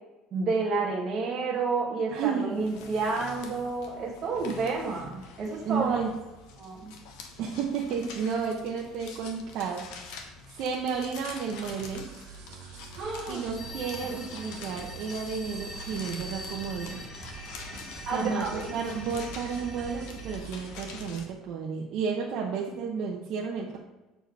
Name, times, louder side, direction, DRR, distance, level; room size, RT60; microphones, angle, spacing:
voice 1, 0.3-6.0 6.6-6.9 13.0-13.4 18.1-18.7, right 4 dB, 30° right, -4 dB, 1.4 m, -30 dB
voice 2, 2.1-2.8 5.6-6.1 7.4-10.2 10.5-12.1 13.3-17.1 18.1-23.8, right 6 dB, 50° right, -2 dB, 0.8 m, -32 dB
sound 1, 2.5-21.3, left 4 dB, 75° left, 1.0 m, -46 dB
sound 2, 11.7-21.2, right 5 dB, 80° right, 1.2 m, -46 dB
sound 3, 13.5-20.4, left 1 dB, 20° left, 0.9 m, -43 dB
6.8 x 4.5 x 4.6 m, 1.1 s
cardioid pair, 170°, 0 cm